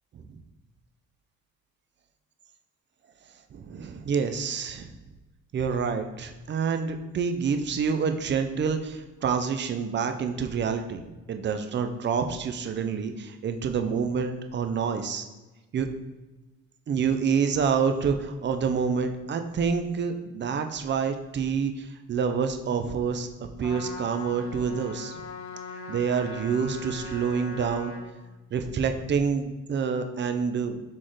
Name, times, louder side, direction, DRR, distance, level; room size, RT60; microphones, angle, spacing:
voice 1, 3.5-4.9 5.5-11.0 11.3-15.3 15.7-15.9 16.9-23.3 23.6-25.2 25.9-27.9 28.5-30.8, right 6 dB, 40° right, 7 dB, 0.5 m, -27 dB
Trumpet, 23.6-28.0, left 3 dB, 65° left, 1.0 m, -40 dB
4.2 x 3.7 x 3.1 m, 1.1 s
cardioid pair, 90°, 30 cm